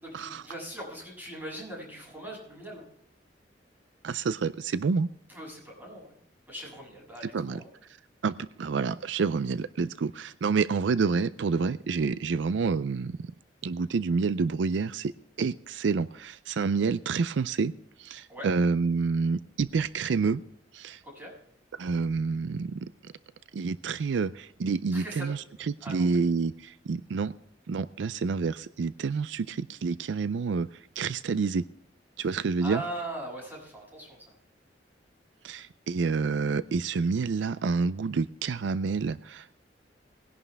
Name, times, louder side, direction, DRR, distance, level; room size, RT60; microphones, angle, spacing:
voice 1, 0.0-2.8 5.3-6.1 6.5-7.7 18.3-18.5 21.0-21.3 24.9-25.3 25.8-26.1 32.2-34.4, right 1 dB, 10° right, -3 dB, 6.7 m, -40 dB
voice 2, 4.0-5.1 7.2-7.6 8.2-13.3 13.6-15.1 15.4-17.7 18.0-20.4 20.7-21.0 21.7-23.1 23.5-27.3 27.7-30.7 31.0-31.7 32.2-32.8 35.4-39.5, right 4 dB, 80° right, 16 dB, 0.4 m, -28 dB
19.5 x 11.0 x 3.4 m, 0.69 s
head